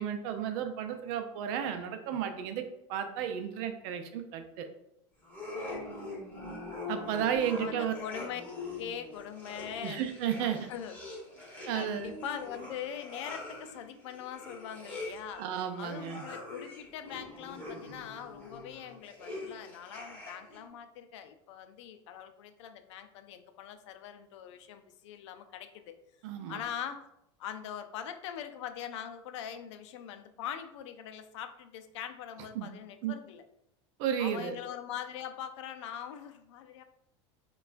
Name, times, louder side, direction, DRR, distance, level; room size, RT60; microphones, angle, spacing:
voice 1, 0.0-2.6 2.9-4.7 6.9-7.9 9.8-10.7 11.7-12.1 15.4-16.2 26.2-26.6 32.5-32.7 33.0-33.1 34.0-34.6, right 9 dB, 60° right, 7 dB, 0.5 m, -33 dB
sound 1, 5.2-20.6, left 2 dB, 10° left, 1.3 m, -43 dB
voice 2, 7.3-8.4 8.8-10.0 10.4-11.0 11.4-15.4 15.8-26.0 26.5-27.0 27.4-33.4 34.2-36.8, left 9 dB, 75° left, 8 dB, 0.4 m, -42 dB
4.2 x 2.3 x 2.5 m, 0.80 s
hypercardioid pair, 105°, 15 cm